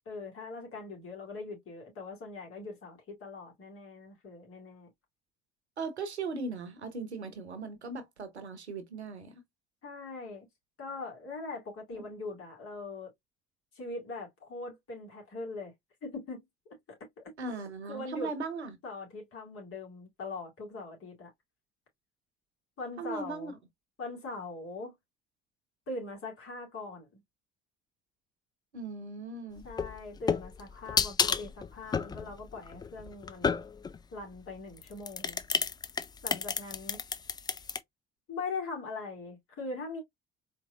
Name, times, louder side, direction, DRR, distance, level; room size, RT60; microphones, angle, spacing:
voice 1, 0.1-4.9 9.8-10.5 10.8-13.1 13.7-15.7 16.0-16.4 17.9-18.3 18.8-21.3 22.8-23.5 24.0-24.9 25.9-27.2 29.6-33.6 34.1-35.4 36.2-37.0 38.3-40.0, left 3 dB, 45° left, 2.4 m, -41 dB
voice 2, 5.8-9.3 11.9-12.2 17.4-18.8 23.0-23.5 28.7-29.7, right 4 dB, 85° right, 0.8 m, -38 dB
sound 1, 29.6-34.0 34.8-37.8, left 5 dB, 15° left, 0.3 m, -31 dB
4.4 x 3.0 x 2.3 m
figure-of-eight pair, 55°, 32 cm